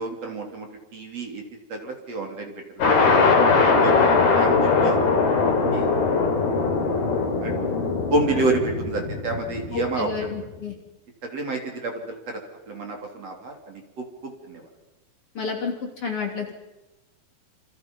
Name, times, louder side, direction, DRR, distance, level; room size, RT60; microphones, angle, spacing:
voice 1, 0.0-1.4 1.7-3.3 3.8-5.0 5.7-5.9 7.4-7.6 8.1-10.3 11.2-12.4 12.7-14.7, right 2 dB, 45° right, 2 dB, 4.2 m, -29 dB
sound 1, 2.8-10.4, left 4 dB, 70° left, 5.5 m, -21 dB
voice 2, 9.7-10.7 15.4-16.5, left 4 dB, 40° left, 1 dB, 3.7 m, -30 dB
28.5 x 27.5 x 5.5 m, 1.0 s
omnidirectional pair, 4.4 m